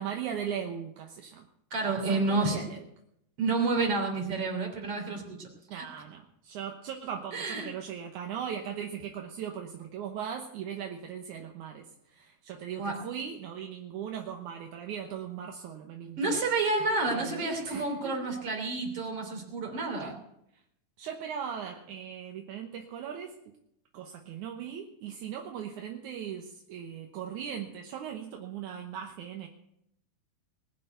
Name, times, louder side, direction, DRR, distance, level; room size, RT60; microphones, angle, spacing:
voice 1, 0.0-1.5 2.1-2.8 5.7-11.9 12.1-16.4 17.1-18.3 20.0-20.1 21.0-23.3 23.9-29.5, right 8 dB, 70° right, 3 dB, 2.2 m, -39 dB
voice 2, 1.7-2.7 3.4-5.9 7.3-7.7 12.8-13.0 16.2-20.1, right 3 dB, 40° right, 2 dB, 3.8 m, -30 dB
20.0 x 6.7 x 9.2 m, 0.78 s
omnidirectional pair, 4.3 m